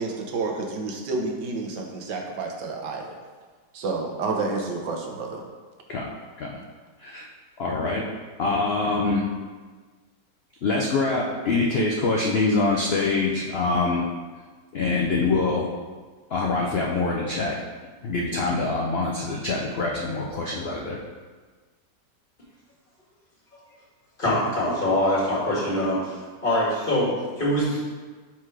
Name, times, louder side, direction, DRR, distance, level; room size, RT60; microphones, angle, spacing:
voice 1, 0.0-3.2 3.7-5.4, right 3 dB, 80° right, 1 dB, 1.5 m, -29 dB
voice 2, 7.6-8.0 8.4-9.3 10.6-14.1 14.7-15.7 16.3-17.5 18.0-21.0, left 3 dB, 70° left, -1 dB, 0.6 m, -24 dB
voice 3, 24.2-26.2 26.4-27.8, left 1 dB, 30° left, -7 dB, 1.8 m, -23 dB
5.8 x 4.4 x 4.7 m, 1.4 s
omnidirectional pair, 1.9 m